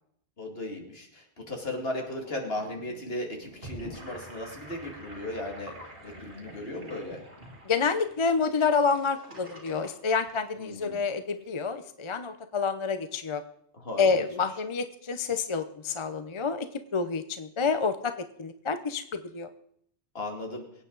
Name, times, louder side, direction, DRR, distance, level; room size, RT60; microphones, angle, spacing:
voice 1, 0.4-5.7 6.0-7.2 10.6-11.0 13.7-14.3 20.1-20.6, left 1 dB, 65° left, 2 dB, 2.6 m, -36 dB
sound 1, 1.9-7.6, equal, 35° right, 7.0 m, -53 dB
Gurgling / Sink (filling or washing), 3.4-10.9, right 1 dB, 60° right, 3.1 m, -47 dB
voice 2, 7.7-13.4 14.0-18.1 18.4-19.5, left 5 dB, 30° left, 9 dB, 0.7 m, -28 dB
23.0 x 9.0 x 4.0 m, 0.68 s
omnidirectional pair, 1.1 m